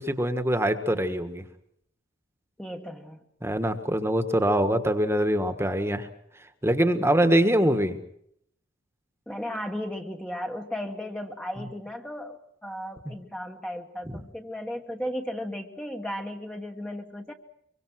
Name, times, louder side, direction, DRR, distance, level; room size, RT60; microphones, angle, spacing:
voice 1, 0.0-1.4 3.4-6.1 6.6-8.0, right 1 dB, 15° right, 9 dB, 1.5 m, -23 dB
voice 2, 2.6-3.2 9.3-17.3, equal, 5° left, 3 dB, 1.3 m, -35 dB
24.5 x 23.5 x 6.3 m, 0.71 s
head